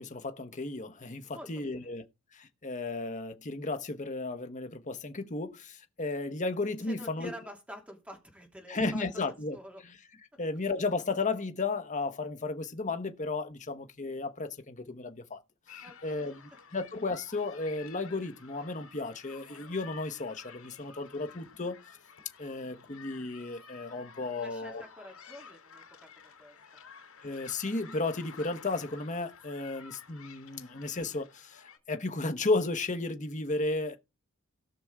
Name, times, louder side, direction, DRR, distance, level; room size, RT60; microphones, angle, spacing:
voice 1, 0.0-2.0 2.3-7.3 8.7-9.6 9.8-9.9 10.4-15.4 16.0-21.8 22.4-24.8 27.2-34.0, left 3 dB, 35° left, 1.2 m, -34 dB
voice 2, 1.3-1.9 6.8-9.8 10.3-10.4 15.8-16.3 24.3-26.8, equal, 5° right, 3.2 m, -48 dB
sound 1, 15.7-31.8, left 6 dB, 90° left, 3.3 m, -52 dB
18.0 x 6.1 x 3.7 m
head